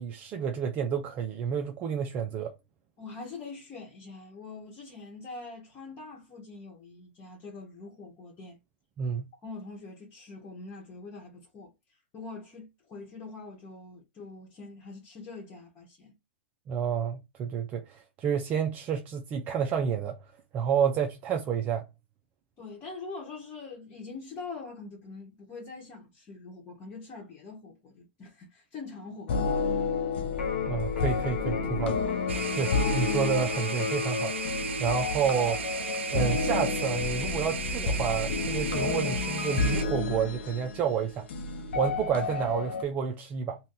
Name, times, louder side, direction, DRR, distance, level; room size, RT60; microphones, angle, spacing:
voice 1, 0.0-2.5 9.0-9.3 16.7-20.2 20.5-21.8 30.6-32.0 32.5-34.5 34.8-35.6 36.1-41.3 41.8-43.6, right 7 dB, 25° right, 0.4 m, -30 dB
voice 2, 3.0-8.6 9.4-11.7 12.1-16.2 22.6-29.6, left 3 dB, 25° left, 1.1 m, -44 dB
sound 1, 29.3-42.8, left 4 dB, 70° left, 0.7 m, -31 dB
Electric guitar, 30.3-38.3, left 6 dB, 85° left, 1.2 m, -36 dB
sound 2, 32.3-39.8, right 6 dB, 85° right, 0.6 m, -35 dB
2.8 x 2.3 x 3.6 m
hypercardioid pair, 140°, 6 cm